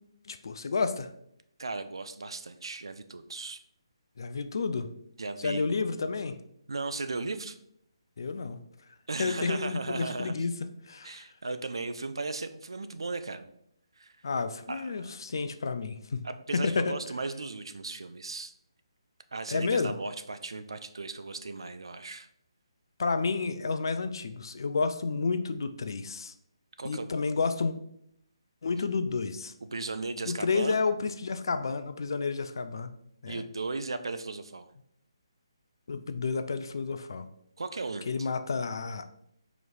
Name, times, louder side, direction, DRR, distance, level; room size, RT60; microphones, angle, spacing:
voice 1, 0.3-1.1 4.2-4.9 5.4-6.4 8.2-8.6 9.2-10.5 10.9-11.2 14.2-16.2 16.5-17.0 19.5-19.9 23.0-26.3 26.8-27.7 28.6-29.5 30.3-32.9 33.2-33.5 35.9-37.3 38.1-39.1, left 4 dB, 50° left, 10 dB, 0.3 m, -30 dB
voice 2, 1.6-3.6 5.2-5.6 6.7-7.6 9.1-10.4 11.0-13.5 14.0-14.2 14.7-15.2 16.2-18.5 19.3-22.3 26.8-27.1 29.7-30.8 33.3-34.7 37.6-38.3, right 3 dB, 65° right, 11 dB, 0.3 m, -36 dB
4.8 x 3.0 x 2.6 m, 0.72 s
figure-of-eight pair, 145°, 3 cm